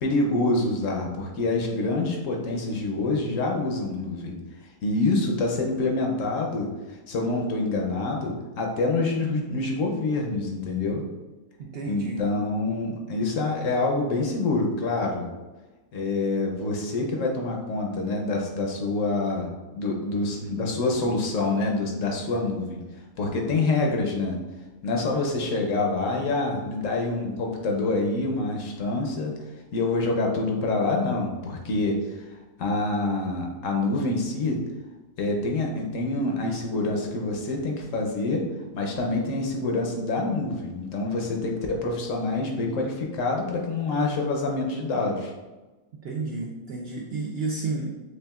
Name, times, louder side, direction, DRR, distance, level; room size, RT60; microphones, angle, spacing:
voice 1, 0.0-11.0 11.9-15.3 15.9-19.5 19.7-22.8 23.2-24.4 24.8-29.3 29.7-32.2 32.6-34.6 35.2-38.5 38.7-45.3, left 2 dB, 65° left, 1 dB, 1.0 m, -26 dB
voice 2, 11.6-12.3 46.0-47.9, right 3 dB, 65° right, -2 dB, 0.6 m, -31 dB
6.4 x 2.4 x 2.3 m, 1.2 s
omnidirectional pair, 1.5 m